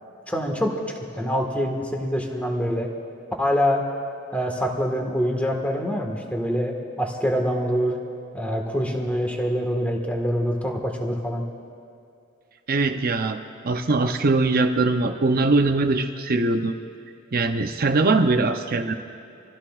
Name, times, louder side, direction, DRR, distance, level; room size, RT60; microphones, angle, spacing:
voice 1, 0.3-0.7 1.1-2.9 3.4-3.8 4.3-8.0 8.3-11.4, equal, 5° left, 1 dB, 1.6 m, -25 dB
voice 2, 12.7-13.4 13.6-16.8 17.3-19.0, right 3 dB, 45° right, 6 dB, 0.7 m, -21 dB
26.0 x 15.5 x 2.4 m, 2.5 s
head